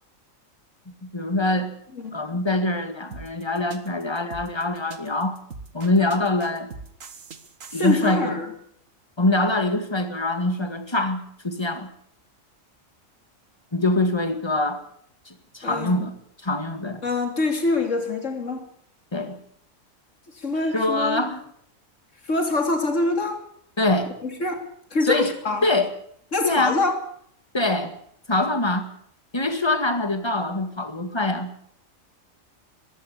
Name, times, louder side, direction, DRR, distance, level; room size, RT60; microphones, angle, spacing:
voice 1, 1.0-1.7 2.1-5.4 5.7-6.7 7.7-8.4 9.2-11.9 13.7-14.8 15.3-16.2 16.4-17.0 19.1-19.4 20.7-21.4 23.8-24.1 25.0-25.3 25.6-25.9 26.4-26.8 27.5-28.0 28.3-28.9 29.3-31.5, left 2 dB, 20° left, 2.0 m, -24 dB
sound 1, 3.1-8.1, right 4 dB, 75° right, 2.0 m, -41 dB
voice 2, 7.7-8.5 15.6-16.1 17.0-18.7 20.4-21.2 22.3-23.5 24.2-25.7 26.3-27.0, left 2 dB, 65° left, 3.4 m, -25 dB
21.5 x 16.0 x 8.4 m
omnidirectional pair, 1.4 m